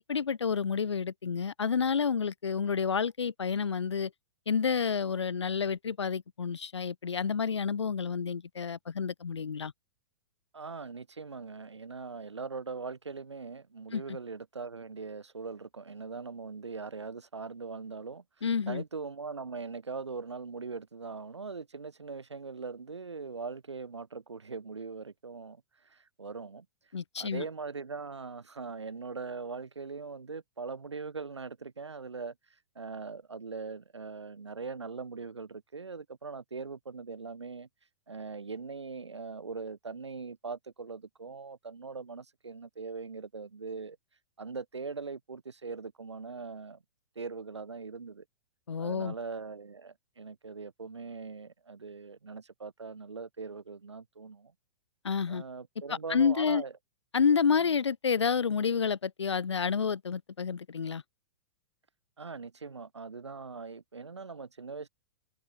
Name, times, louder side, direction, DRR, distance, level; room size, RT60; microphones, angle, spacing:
voice 1, 0.0-4.1 4.5-9.7 13.9-14.0 18.4-18.8 26.9-27.4 48.7-49.1 55.0-55.4 55.9-56.6 57.1-61.0, left 6 dB, 80° left, 0.7 m, -29 dB
voice 2, 10.5-25.6 25.9-26.7 27.2-32.3 32.8-37.7 38.1-44.0 44.4-46.8 47.2-48.2 48.8-54.5 55.3-56.7 57.4-57.8 62.2-64.9, right 4 dB, 80° right, 2.0 m, -41 dB
figure-of-eight pair, 110°, 14 cm